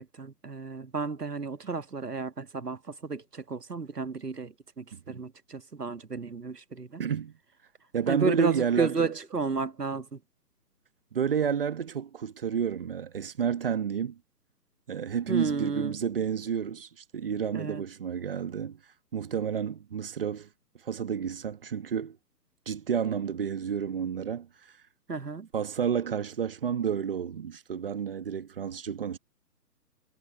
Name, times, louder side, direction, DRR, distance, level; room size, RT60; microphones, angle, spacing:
voice 1, 0.0-7.0 8.1-10.2 15.3-16.0 17.5-17.8 25.1-25.5, right 4 dB, 70° right, 1.7 m, -32 dB
voice 2, 4.9-5.2 7.0-7.3 7.9-9.1 11.1-14.2 14.9-18.8 19.1-20.5 20.8-22.2 22.7-24.5 25.5-29.2, right 7 dB, 35° right, 1.6 m, -30 dB
figure-of-eight pair, 140°, 48 cm